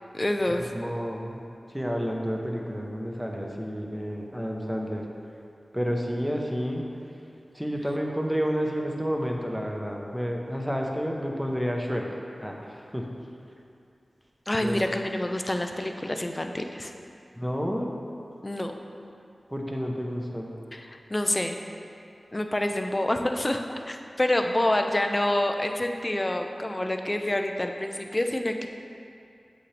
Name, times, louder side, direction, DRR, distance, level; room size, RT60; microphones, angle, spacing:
voice 1, 0.1-0.7 14.5-16.9 18.4-18.7 20.7-21.6 22.3-28.7, left 1 dB, 25° left, 5 dB, 0.6 m, -27 dB
voice 2, 0.7-1.4 1.7-5.0 5.7-6.8 7.5-12.1 12.4-13.1 14.6-14.8 17.4-17.9 19.5-20.5, equal, 5° right, 0 dB, 1.0 m, -30 dB
8.5 x 7.5 x 3.4 m, 2.5 s
wide cardioid pair, 65°, 0 cm